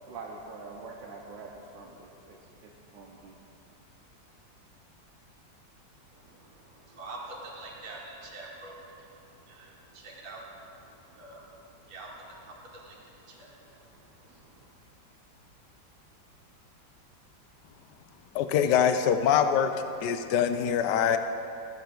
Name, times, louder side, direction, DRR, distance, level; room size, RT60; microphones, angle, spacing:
voice 1, 0.1-3.4, right 3 dB, 80° right, -2 dB, 1.4 m, -45 dB
voice 2, 6.1-14.7, right 2 dB, 50° right, -3 dB, 1.6 m, -47 dB
voice 3, 18.3-19.7 20.0-21.2, left 8 dB, 75° left, 9 dB, 1.1 m, -24 dB
12.5 x 7.8 x 3.8 m, 2.7 s
omnidirectional pair, 2.0 m